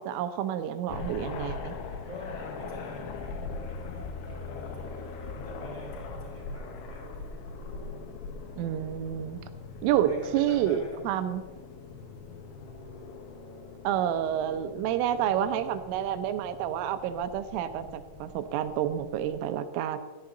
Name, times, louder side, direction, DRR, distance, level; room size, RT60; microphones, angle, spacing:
voice 1, 0.0-1.7 8.6-9.4 9.8-11.4 13.8-20.0, right 10 dB, 80° right, 10 dB, 3.4 m, -29 dB
sound 1, 0.9-19.5, left 4 dB, 90° left, 4.2 m, -41 dB
voice 2, 2.1-3.4 3.7-7.4 10.0-11.1, left 1 dB, 10° right, -3 dB, 4.1 m, -46 dB
21.5 x 14.0 x 3.9 m, 1.3 s
omnidirectional pair, 5.8 m